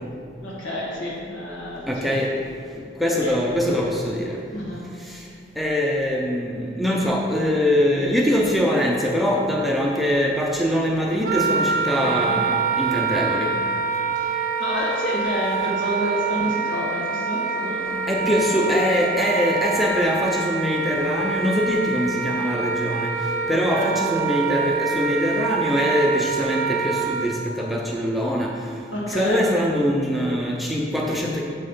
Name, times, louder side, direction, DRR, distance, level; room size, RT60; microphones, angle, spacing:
voice 1, 0.4-2.1 3.1-3.3 4.5-4.9 12.0-12.4 14.2-18.7 23.5-23.9 28.9-29.5, equal, 75° left, -4 dB, 2.0 m, -29 dB
voice 2, 1.9-2.3 3.0-4.4 5.0-5.3 5.6-13.5 18.1-23.1 23.5-28.5 29.1-31.4, equal, ahead, -2 dB, 0.6 m, -23 dB
Wind instrument woodwind instrument, 11.2-27.3, right 5 dB, 45° right, 0.7 m, -25 dB
7.4 x 5.4 x 5.6 m, 2.2 s
head